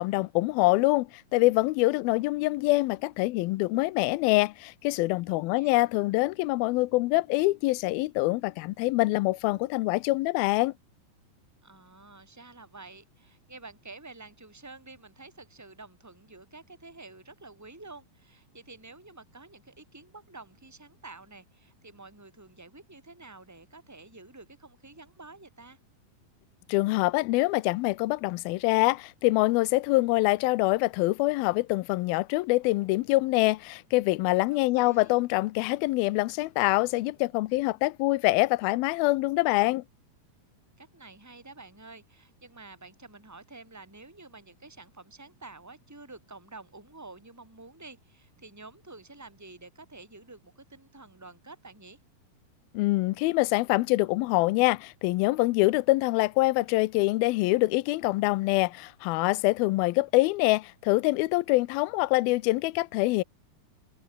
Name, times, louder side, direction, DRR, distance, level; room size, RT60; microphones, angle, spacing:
voice 1, 0.0-10.7 26.7-39.8 52.7-63.2, left 21 dB, 80° left, 2.5 m, -25 dB
voice 2, 5.3-5.8 11.6-25.8 34.5-35.1 40.8-52.0, right 3 dB, 5° right, 4.8 m, -49 dB
omnidirectional pair, 4.3 m